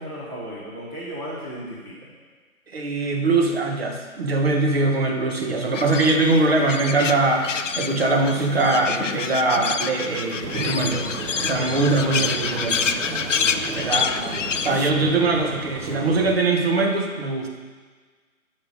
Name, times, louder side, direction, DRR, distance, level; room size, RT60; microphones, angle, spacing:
voice 1, 0.0-2.1 13.8-14.0, equal, 20° right, -9 dB, 0.9 m, -35 dB
voice 2, 2.7-7.5 7.8-11.1 11.4-12.9 13.7-17.5, right 3 dB, 45° right, 2 dB, 1.2 m, -22 dB
sound 1, 5.7-14.9, left 6 dB, 60° left, 0.6 m, -28 dB
sound 2, 10.4-16.4, right 4 dB, 80° right, 1.1 m, -34 dB
9.5 x 5.6 x 5.2 m, 1.5 s
hypercardioid pair, 160°, 43 cm